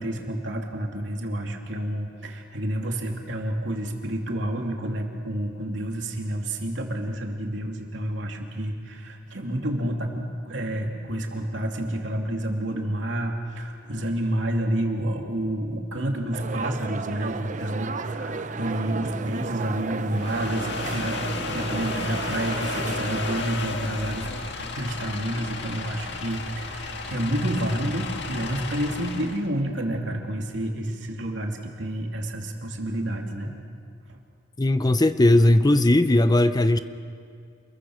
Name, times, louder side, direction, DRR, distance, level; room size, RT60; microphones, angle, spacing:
voice 1, 0.0-21.2 21.5-24.3 24.6-33.5, right 1 dB, 70° right, 1 dB, 2.9 m, -29 dB
sound 1, 16.3-23.4, right 4 dB, 40° right, 0.8 m, -34 dB
sound 2, 20.1-29.5, left 3 dB, 65° left, 1.8 m, -33 dB
voice 2, 34.6-36.8, left 1 dB, 20° left, 11 dB, 0.6 m, -18 dB
28.0 x 22.0 x 6.4 m, 2.4 s
head